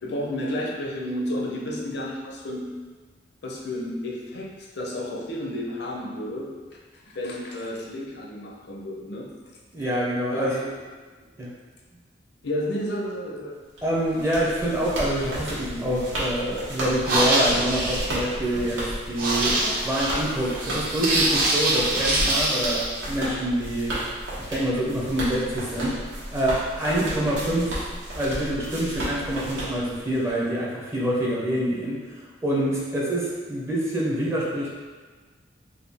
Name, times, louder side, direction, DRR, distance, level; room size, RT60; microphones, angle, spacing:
voice 1, 0.0-2.6 3.4-6.5 7.1-9.3 10.3-10.6 12.4-13.5, left 1 dB, 65° left, -2 dB, 0.6 m, -31 dB
voice 2, 9.7-10.7 11.4-11.5 13.8-19.6 19.8-24.0 24.4-27.8 28.1-34.7, right 1 dB, 15° right, -5 dB, 0.5 m, -26 dB
sound 1, 13.8-30.3, right 1 dB, 85° right, 1.1 m, -33 dB
sound 2, 16.9-22.9, right 1 dB, 50° right, 0.7 m, -25 dB
3.6 x 2.2 x 3.4 m, 1.4 s
head